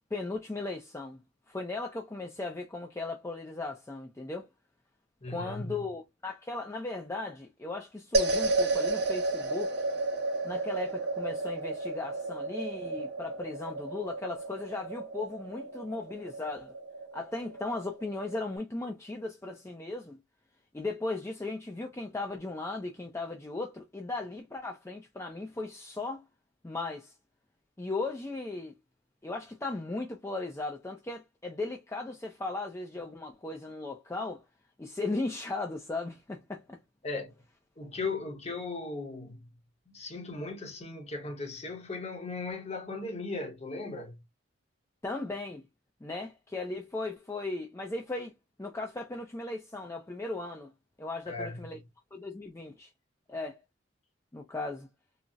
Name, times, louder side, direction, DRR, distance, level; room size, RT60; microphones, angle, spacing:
voice 1, 0.1-1.2 1.5-4.5 5.3-9.7 10.4-16.7 17.1-20.2 20.7-26.2 26.6-27.1 27.8-28.8 29.2-34.4 34.8-36.8 45.0-45.6 46.0-48.3 48.6-50.7 51.0-51.8 52.1-52.9 53.3-53.6 54.3-54.9, left 2 dB, 15° left, 0.4 m, -37 dB
voice 2, 5.2-5.8 37.0-37.3 37.8-39.5 39.9-44.2 51.3-51.8, left 3 dB, 35° left, 0.8 m, -37 dB
sound 1, 8.1-18.6, right 2 dB, 60° right, 0.8 m, -32 dB
3.9 x 2.0 x 2.3 m
head